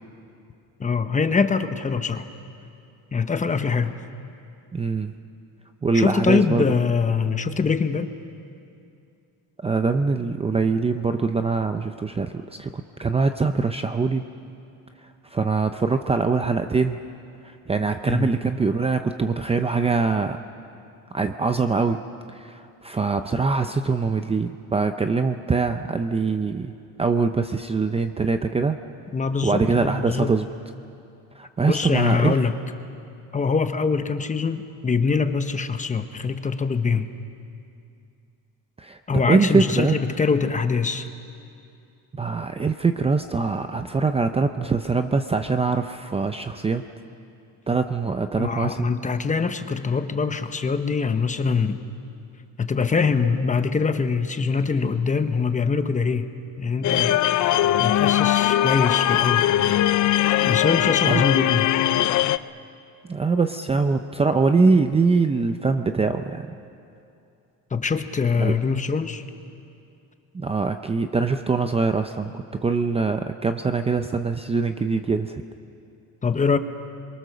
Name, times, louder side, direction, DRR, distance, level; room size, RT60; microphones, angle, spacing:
voice 1, 0.8-2.2 3.1-3.9 5.9-8.2 18.1-18.3 29.1-30.4 31.6-32.5 33.3-37.1 39.1-41.1 48.4-51.8 52.6-56.3 56.6-57.2 57.8-59.5 60.5-61.7 67.7-69.2 76.2-76.6, left 5 dB, 20° left, 9 dB, 1.0 m, -23 dB
voice 2, 4.7-5.1 5.8-6.6 9.6-14.2 15.3-17.0 17.4-20.4 21.1-22.0 22.3-26.7 27.0-28.8 29.4-30.4 31.4-32.4 38.8-39.0 39.3-40.0 42.1-46.8 47.7-48.9 61.1-61.2 63.1-66.5 68.4-68.5 70.3-75.4, right 4 dB, 15° right, 7 dB, 0.6 m, -23 dB
sound 1, 56.8-62.4, left 13 dB, 55° left, 0.6 m, -20 dB
27.5 x 23.0 x 6.8 m, 2.6 s
cardioid pair, 140°, 35 cm